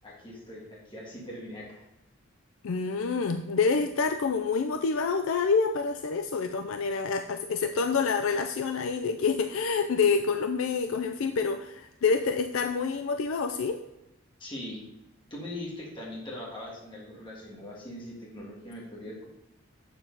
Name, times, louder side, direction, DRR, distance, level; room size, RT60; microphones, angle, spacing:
voice 1, 0.0-1.9 14.4-14.8 15.3-19.3, left 1 dB, 20° left, -4 dB, 1.7 m, -41 dB
voice 2, 2.6-13.8, left 5 dB, 65° left, 8 dB, 0.4 m, -27 dB
7.4 x 6.9 x 3.9 m, 0.92 s
head